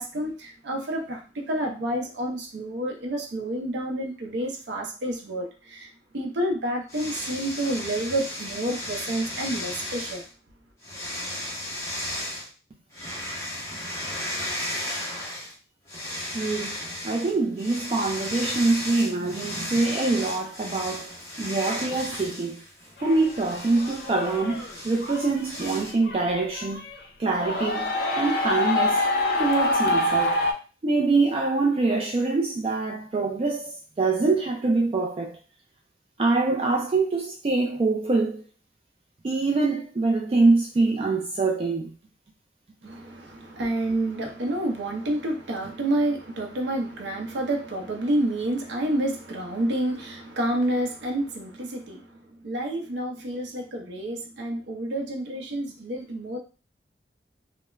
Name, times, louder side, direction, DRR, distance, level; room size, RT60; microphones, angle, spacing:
voice 1, 0.0-10.2 42.8-56.4, right 1 dB, 80° right, 0.5 m, -29 dB
sound 1, 6.9-10.3 10.8-12.5 12.9-15.5 15.9-25.9, left 1 dB, 15° left, 0.7 m, -35 dB
voice 2, 16.3-16.7 17.0-22.6 23.0-26.8 27.2-27.9 28.2-29.0 29.4-30.4 30.8-35.4 36.2-38.4 39.2-41.9, right 3 dB, 30° right, 0.3 m, -24 dB
sound 2, 23.0-27.0 27.3-30.5, left 2 dB, 55° left, 0.5 m, -26 dB
2.3 x 2.0 x 3.0 m
head